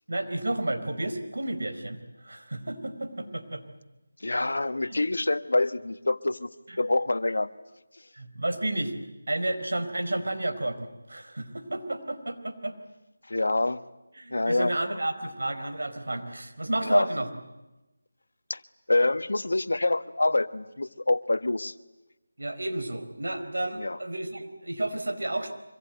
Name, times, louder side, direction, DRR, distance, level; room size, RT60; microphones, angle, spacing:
voice 1, 0.1-3.6 4.8-5.0 6.7-6.8 8.1-8.9 9.3-12.8 14.2-17.3 22.4-25.5, right 1 dB, 80° right, 7 dB, 4.6 m, -31 dB
voice 2, 4.2-6.5 6.8-7.5 13.3-13.8 14.3-15.0 16.8-17.1 18.5-18.6 18.9-21.7 23.7-24.0, left 2 dB, 75° left, 12 dB, 1.4 m, -26 dB
25.5 x 24.5 x 9.3 m, 1.0 s
figure-of-eight pair, 165°, 0 cm